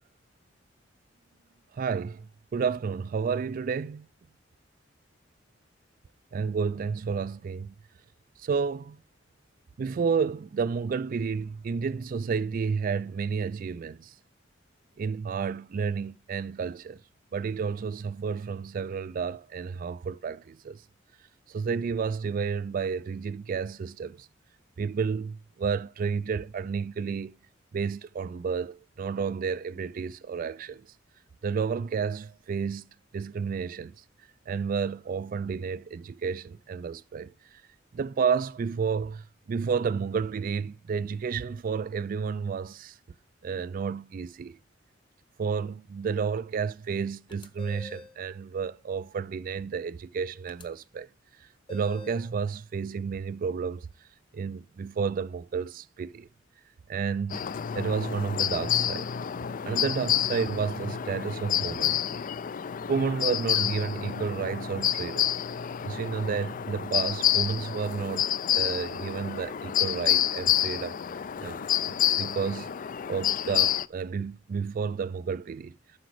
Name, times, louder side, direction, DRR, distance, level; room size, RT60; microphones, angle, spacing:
voice 1, 1.7-4.1 6.3-7.7 8.4-9.0 9.8-14.1 15.0-17.0 17.3-20.8 21.5-24.3 24.8-27.4 27.7-30.9 31.4-32.9 33.1-34.0 34.5-37.6 37.9-43.0 43.4-44.6 45.4-51.1 51.4-53.9 54.3-56.3 56.9-57.4 57.7-59.1 59.6-62.0 62.9-65.3 65.8-71.0 71.4-72.7 73.1-75.7, right 5 dB, 45° right, 0.3 m, -31 dB
sound 1, 47.3-48.2 50.5-50.6 51.7-52.3, left 3 dB, 25° left, 1.0 m, -45 dB
sound 2, 57.3-73.9, left 11 dB, 45° left, 0.4 m, -29 dB
7.9 x 6.1 x 4.7 m
head